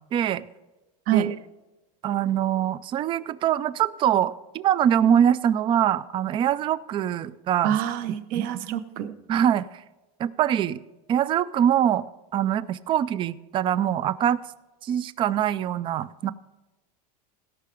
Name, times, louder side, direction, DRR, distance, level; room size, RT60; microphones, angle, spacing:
voice 1, 0.1-0.4 1.1-1.3 2.0-7.8 8.3-8.5 9.3-9.8 10.2-10.8 11.1-12.0 12.3-14.4 14.8-16.3, right 10 dB, 25° right, 18 dB, 0.3 m, -23 dB
voice 2, 7.6-9.1, right 10 dB, 45° right, 13 dB, 0.7 m, -26 dB
17.0 x 5.8 x 5.0 m, 1.1 s
supercardioid pair, 145°, 20 cm